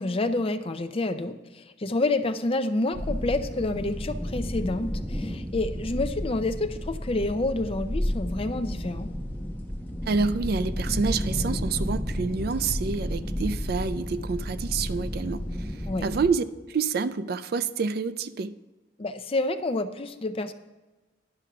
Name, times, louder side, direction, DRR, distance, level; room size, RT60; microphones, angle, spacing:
voice 1, 0.0-9.1 15.9-16.1 19.0-20.5, left 2 dB, 30° left, 9 dB, 0.5 m, -28 dB
sound 1, 2.9-16.3, equal, 10° left, 1.1 m, -32 dB
voice 2, 10.1-18.6, right 4 dB, 55° right, 14 dB, 0.4 m, -28 dB
10.5 x 6.1 x 5.7 m, 1.2 s
head